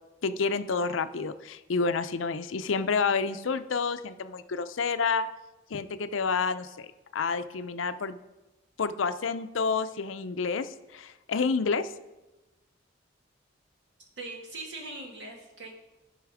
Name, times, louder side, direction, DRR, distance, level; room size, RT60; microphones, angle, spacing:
voice 1, 0.2-5.3 5.7-8.2 8.8-11.9, left 4 dB, 85° left, 11 dB, 0.5 m, -29 dB
voice 2, 14.2-15.7, right 2 dB, 60° right, 0 dB, 2.1 m, -40 dB
14.0 x 5.6 x 4.9 m, 1.1 s
head